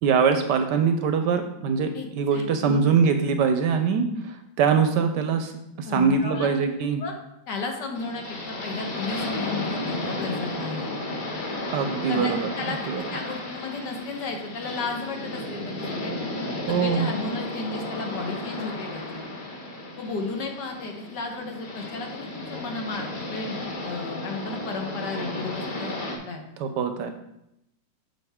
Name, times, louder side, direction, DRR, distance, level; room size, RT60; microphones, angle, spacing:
voice 1, 0.0-7.0 11.7-13.0 16.7-17.1 26.6-27.1, right 6 dB, 75° right, 7 dB, 1.1 m, -23 dB
voice 2, 1.9-2.8 5.9-6.7 7.0-7.1 7.5-10.9 12.1-16.1 16.7-19.3 20.0-26.4, left 3 dB, 65° left, 3 dB, 1.6 m, -34 dB
sound 1, 7.9-26.2, left 2 dB, 35° left, 0.9 m, -33 dB
7.7 x 6.1 x 3.5 m, 0.83 s
omnidirectional pair, 2.1 m